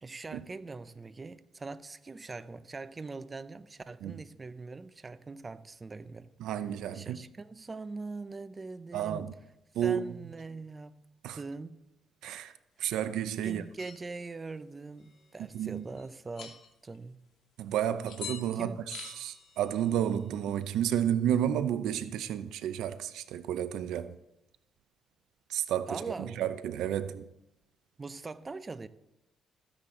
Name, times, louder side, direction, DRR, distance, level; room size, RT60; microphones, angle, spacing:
voice 1, 0.0-6.3 6.9-9.3 9.8-10.9 11.3-11.8 13.4-16.6 16.8-17.2 18.5-18.8 25.9-26.5 28.0-28.9, right 3 dB, 25° right, 0.7 m, -42 dB
voice 2, 6.4-7.2 8.9-9.3 9.7-10.1 11.2-11.4 12.2-12.5 12.8-13.6 15.4-15.8 17.6-24.2 25.5-27.3, right 10 dB, 85° right, 0.6 m, -31 dB
sound 1, 13.4-14.0 15.0-15.5 16.0-16.1 16.3-17.0 18.1-18.5 18.9-20.8, left 8 dB, 75° left, 2.3 m, -47 dB
14.5 x 10.0 x 3.8 m
cardioid pair, 90°, 0 cm